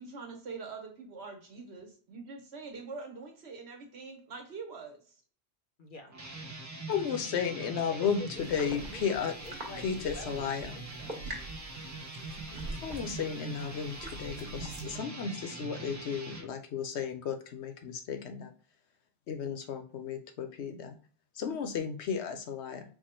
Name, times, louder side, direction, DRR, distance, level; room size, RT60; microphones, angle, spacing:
voice 1, 0.0-5.2, right 4 dB, 75° right, 3 dB, 1.4 m, -44 dB
voice 2, 5.8-6.1 7.9-11.2 12.5-12.8, left 2 dB, 55° left, 4 dB, 0.8 m, -48 dB
sound 1, 6.1-16.5, right 2 dB, 25° right, 0.5 m, -43 dB
voice 3, 6.9-9.3 9.8-10.8 12.8-18.5 19.3-21.0 21.4-22.8, left 7 dB, 85° left, 7 dB, 1.1 m, -34 dB
sound 2, 8.4-15.0, right 1 dB, 50° right, 1.3 m, -45 dB
4.7 x 2.2 x 4.3 m, 0.42 s
omnidirectional pair, 1.1 m